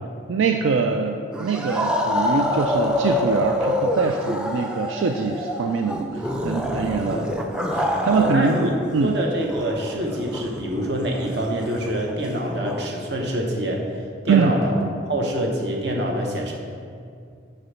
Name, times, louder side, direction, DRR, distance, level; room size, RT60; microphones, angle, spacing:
voice 1, 0.3-7.2 7.7-9.2 14.3-14.6, right 4 dB, 85° right, 4 dB, 0.4 m, -23 dB
sound 1, 1.3-8.7 9.0-12.9, left 1 dB, 5° right, 0.4 m, -26 dB
voice 2, 7.0-7.4 8.1-13.8 14.2-14.7 15.1-16.5, right 1 dB, 60° right, 0 dB, 0.9 m, -26 dB
6.7 x 4.1 x 5.7 m, 2.3 s
head